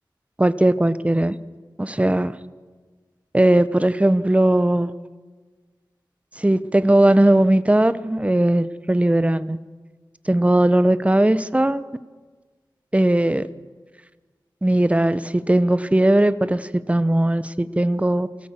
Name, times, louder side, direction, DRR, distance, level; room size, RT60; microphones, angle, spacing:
voice 1, 0.4-1.4 1.8-2.3 3.3-4.9 6.4-9.6 10.3-11.8 12.9-13.4 14.6-18.3, right 1 dB, 15° right, 14 dB, 0.9 m, -18 dB
25.0 x 16.5 x 7.5 m, 1.4 s
wide cardioid pair, 60°, 8 cm